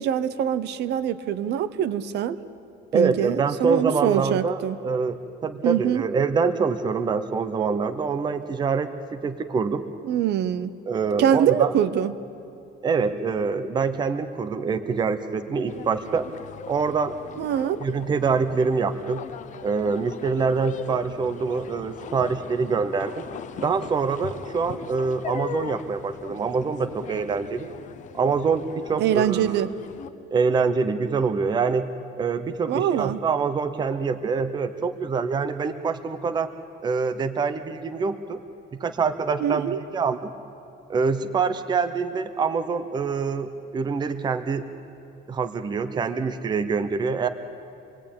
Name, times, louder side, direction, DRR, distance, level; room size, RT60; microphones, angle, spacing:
voice 1, 0.0-2.4 2.9-4.8 5.6-6.1 10.1-10.7 11.2-12.1 17.4-17.8 29.0-29.7 32.7-33.2 39.4-39.8, right 9 dB, 55° right, 12 dB, 0.8 m, -23 dB
voice 2, 2.9-9.8 10.9-11.7 12.8-16.3 16.7-17.1 17.8-19.3 19.6-23.2 23.6-27.7 28.1-29.7 30.3-31.9 32.2-36.5 36.8-38.4 38.7-40.3 40.9-44.7 45.3-47.3, right 5 dB, 20° right, 10 dB, 0.7 m, -25 dB
sound 1, 15.7-30.1, left 9 dB, 35° left, 0.8 m, -40 dB
26.5 x 20.5 x 8.7 m, 2.7 s
cardioid pair, 175°, 21 cm